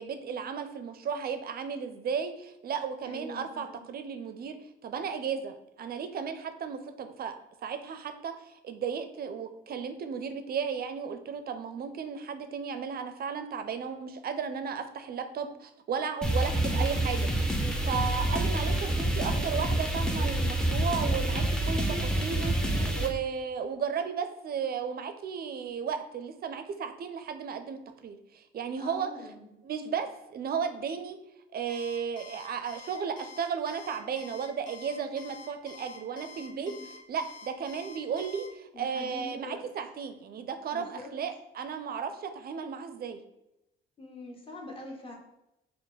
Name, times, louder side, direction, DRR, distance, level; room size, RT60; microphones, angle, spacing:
voice 1, 0.0-29.1 29.6-31.2 31.5-36.7 37.1-43.2, right 6 dB, 50° right, 9 dB, 0.5 m, -34 dB
voice 2, 3.0-3.8 28.8-29.5 36.5-36.8 38.7-39.6 40.7-41.1 44.0-45.1, left 2 dB, 25° left, -1 dB, 1.1 m, -44 dB
sound 1, 16.2-23.1, right 1 dB, 5° left, 0.6 m, -27 dB
Alarm, 31.7-38.5, left 4 dB, 70° left, 0.8 m, -48 dB
4.4 x 2.1 x 4.0 m, 0.89 s
cardioid pair, 90°, 20 cm